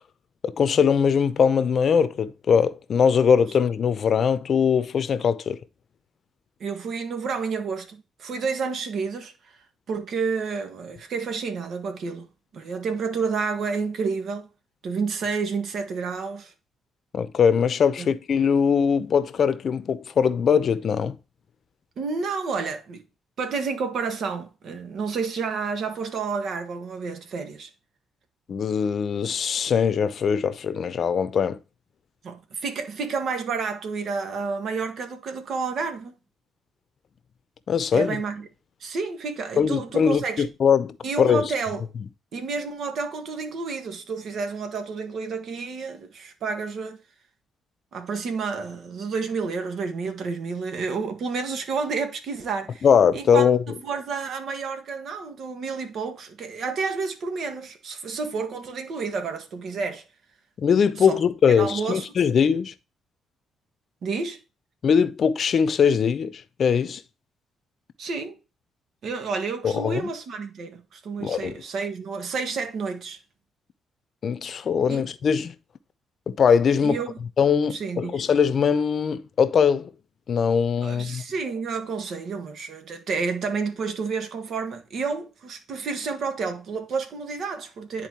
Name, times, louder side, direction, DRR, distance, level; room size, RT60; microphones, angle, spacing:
voice 1, 0.4-5.6 17.1-21.2 28.5-31.6 37.7-38.2 39.6-41.5 52.8-53.6 60.6-62.7 64.8-67.0 69.6-70.1 71.2-71.6 74.2-75.5 76.3-77.0 77.4-79.9 80.3-81.2, left 7 dB, 55° left, 0.7 m, -21 dB
voice 2, 6.6-9.3 9.9-12.3 12.5-14.5 14.8-16.5 18.0-18.1 22.0-23.0 23.4-27.7 32.2-36.2 37.9-38.5 38.8-40.4 41.0-41.8 42.3-47.0 47.9-52.8 53.1-60.0 61.0-61.2 61.6-62.1 64.0-64.4 68.0-68.4 69.0-73.2 74.9-75.1 76.8-77.1 77.7-78.2 80.8-88.1, right 5 dB, 65° right, 1.5 m, -30 dB
10.0 x 4.1 x 3.0 m
cardioid pair, 90°, 0 cm